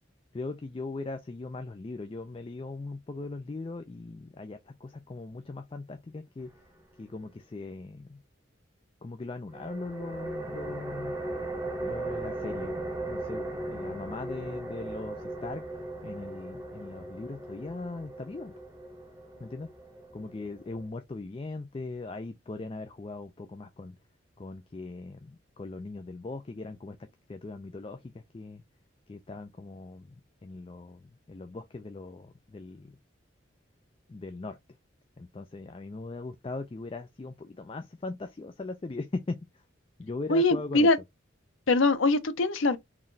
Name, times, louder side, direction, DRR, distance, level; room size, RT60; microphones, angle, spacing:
voice 1, 0.3-6.5 7.0-8.2 9.0-11.2 11.8-15.6 16.0-18.5 19.4-19.7 20.1-24.0 24.4-27.0 27.3-28.6 29.1-30.2 30.4-33.0 34.1-34.6 35.2-39.4 40.0-40.9, left 3 dB, 30° left, 0.3 m, -39 dB
sound 1, 9.5-20.9, right 2 dB, 15° right, 0.9 m, -38 dB
voice 2, 40.3-41.0 41.7-42.8, left 2 dB, 90° left, 0.6 m, -22 dB
4.0 x 3.0 x 2.7 m
head